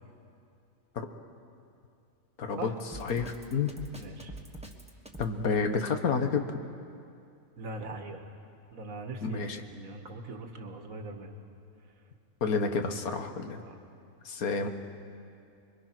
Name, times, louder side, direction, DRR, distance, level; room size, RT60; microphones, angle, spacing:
voice 1, 2.4-2.7 3.0-3.7 5.2-6.5 9.2-9.6 12.4-13.6 14.2-14.7, left 5 dB, 80° left, 6 dB, 1.7 m, -29 dB
Drum kit, 2.9-5.3, right 2 dB, 5° right, 1.3 m, -44 dB
voice 2, 4.0-4.3 7.6-8.3 8.7-11.3 13.6-13.8, right 2 dB, 70° right, 4 dB, 2.0 m, -41 dB
25.5 x 23.0 x 6.1 m, 2.5 s
omnidirectional pair, 1.5 m